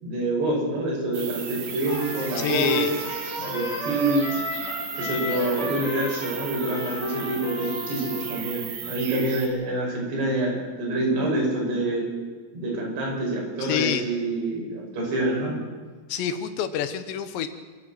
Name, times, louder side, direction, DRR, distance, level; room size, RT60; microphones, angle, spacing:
voice 1, 0.0-2.9 3.4-4.4 5.0-12.1 12.5-15.5, right 2 dB, 70° right, -1 dB, 8.1 m, -26 dB
sound 1, 1.1-9.5, right 7 dB, 85° right, 4.8 m, -36 dB
Trumpet, 1.8-8.6, equal, 10° left, 3.3 m, -34 dB
voice 2, 2.4-2.9 13.6-14.0 16.1-17.5, left 9 dB, 80° left, 10 dB, 3.4 m, -27 dB
26.5 x 13.0 x 7.9 m, 1.4 s
omnidirectional pair, 5.0 m